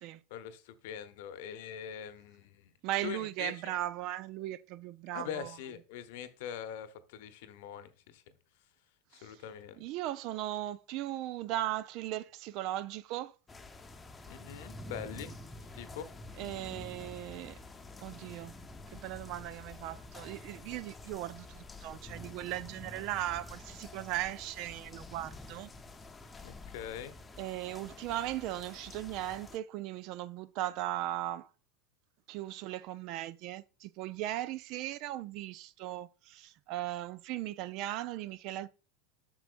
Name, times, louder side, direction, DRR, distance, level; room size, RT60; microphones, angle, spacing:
voice 1, 0.3-2.7 3.0-3.5 5.1-8.2 9.1-9.8 14.3-15.3 15.8-16.1 26.4-27.1, left 9 dB, 65° left, 0.8 m, -43 dB
voice 2, 2.8-5.6 9.2-9.4 9.8-13.3 16.4-17.6 18.0-18.5 18.9-25.7 27.4-31.5 32.3-38.7, right 14 dB, 55° right, 0.4 m, -38 dB
sound 1, 13.5-29.6, left 2 dB, 15° left, 0.8 m, -49 dB
7.8 x 6.3 x 2.5 m
hypercardioid pair, 90°, 0 cm